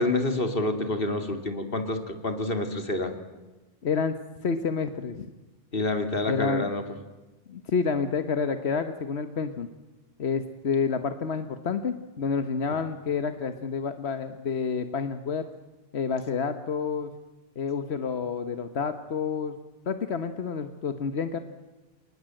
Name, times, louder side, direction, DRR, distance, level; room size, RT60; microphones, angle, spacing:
voice 1, 0.0-3.1 5.7-6.8, left 2 dB, 60° left, 6 dB, 2.8 m, -27 dB
voice 2, 3.8-4.1 4.4-5.3 6.3-6.7 7.5-9.7 10.2-15.4 15.9-17.1 17.6-19.6 19.9-21.4, left 5 dB, 90° left, 9 dB, 1.4 m, -29 dB
29.0 x 19.5 x 7.8 m, 1.2 s
omnidirectional pair, 1.1 m